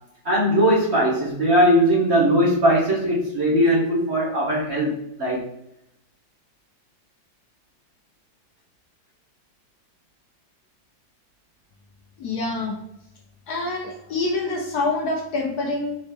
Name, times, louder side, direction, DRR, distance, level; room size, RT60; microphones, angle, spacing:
voice 1, 0.2-5.5, equal, 45° right, -5 dB, 1.1 m, -19 dB
voice 2, 12.2-12.8 13.5-16.0, left 3 dB, 65° left, 0 dB, 1.1 m, -26 dB
4.1 x 3.1 x 3.3 m, 0.84 s
omnidirectional pair, 2.0 m